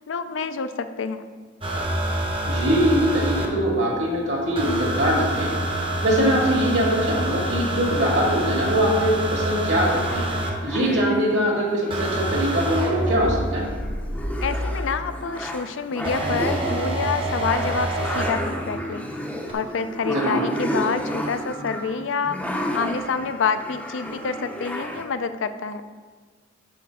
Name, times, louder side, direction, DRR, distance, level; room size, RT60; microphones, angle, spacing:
voice 1, 0.1-1.2 14.4-19.0 19.5-22.4 22.7-25.8, left 5 dB, 75° left, 11 dB, 0.4 m, -27 dB
sound 1, 1.6-3.5 4.5-10.5 11.9-14.9 16.0-18.3 19.5-19.6, right 1 dB, 25° right, 0.8 m, -26 dB
voice 2, 2.4-5.5 6.0-10.3 10.6-13.7 20.0-20.4, equal, 65° right, -3 dB, 2.0 m, -22 dB
sound 2, 9.7-25.0, equal, 5° left, 0.6 m, -33 dB
11.5 x 4.2 x 3.6 m, 1.5 s
head